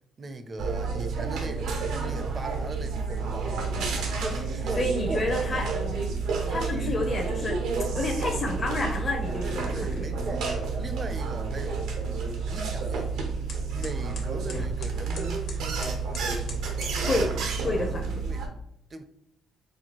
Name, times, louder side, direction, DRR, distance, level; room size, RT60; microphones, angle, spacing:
voice 1, 0.2-3.6 4.2-5.7 6.5-7.0 8.0-8.1 9.4-11.8 12.5-13.1 13.7-15.5 17.4-18.5 18.9-19.0, right 2 dB, 35° right, 0.4 m, -39 dB
sound 1, 0.6-18.5, right 4 dB, 90° right, 0.6 m, -30 dB
sound 2, 3.7-5.7, left 3 dB, 85° left, 0.5 m, -44 dB
voice 2, 4.8-5.7 6.5-7.6 7.9-10.0 17.0-17.3 17.6-18.2, left 2 dB, 40° left, 0.5 m, -29 dB
sound 3, 10.2-17.0, left 3 dB, 70° left, 1.0 m, -46 dB
4.4 x 2.3 x 2.9 m
cardioid pair, 90°, 0 cm